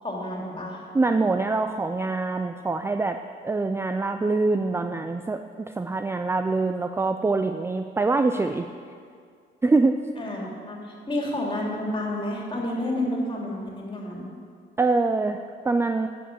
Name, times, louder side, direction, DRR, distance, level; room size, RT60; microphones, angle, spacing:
voice 1, 0.0-0.8 10.2-10.8 11.1-14.3, left 1 dB, 25° left, -2 dB, 2.9 m, -30 dB
voice 2, 0.9-3.2 3.4-8.7 9.6-10.0 14.8-16.1, right 3 dB, 15° right, 7 dB, 0.4 m, -24 dB
10.0 x 7.0 x 6.9 m, 2.2 s
cardioid pair, 90°, 20 cm